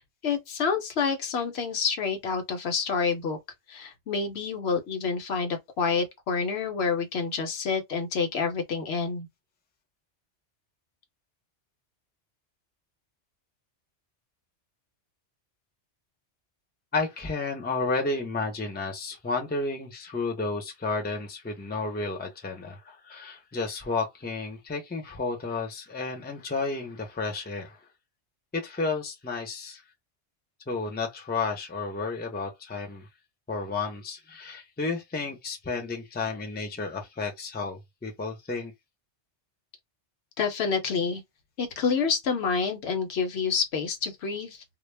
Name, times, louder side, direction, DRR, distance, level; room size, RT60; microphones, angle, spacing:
voice 1, 0.0-3.4 3.7-9.3 40.4-41.2 41.6-44.6, left 5 dB, 65° left, 0.9 m, -28 dB
voice 2, 16.9-27.8 28.5-29.8 30.7-33.1 33.5-38.7, left 3 dB, 10° left, 0.5 m, -32 dB
2.2 x 2.0 x 3.2 m
omnidirectional pair, 1.2 m